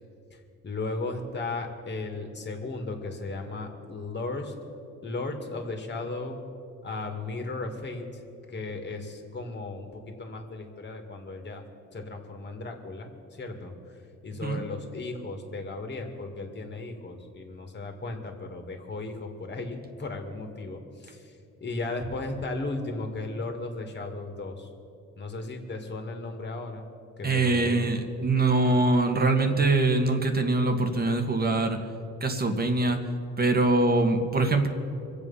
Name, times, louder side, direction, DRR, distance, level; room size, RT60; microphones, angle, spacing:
voice 1, 0.3-4.5 5.0-6.4 6.8-8.1 8.5-11.6 11.9-13.7 14.2-24.7 25.2-26.9 27.2-27.9, left 3 dB, 35° left, 4 dB, 2.3 m, -35 dB
voice 2, 27.2-31.8 32.2-33.0 33.4-34.7, right 2 dB, 30° right, 5 dB, 1.8 m, -23 dB
24.5 x 8.1 x 5.7 m, 2.7 s
cardioid pair, 90°, 30 cm